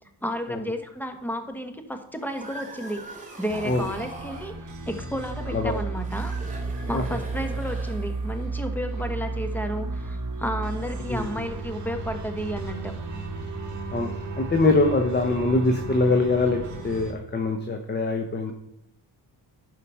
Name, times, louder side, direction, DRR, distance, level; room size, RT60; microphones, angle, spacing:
voice 1, 0.2-6.3 6.6-12.9, equal, 5° left, 6 dB, 1.2 m, -32 dB
sound 1, 2.1-4.6 6.0-8.4, right 2 dB, 20° right, 2.6 m, -42 dB
sound 2, 3.5-17.1, right 3 dB, 45° right, 1.6 m, -33 dB
voice 2, 5.5-5.8 6.9-7.0 11.1-11.4 13.9-14.1 14.4-18.5, left 2 dB, 25° left, 4 dB, 1.0 m, -23 dB
11.5 x 5.1 x 5.6 m, 0.79 s
cardioid pair, 110°, 41 cm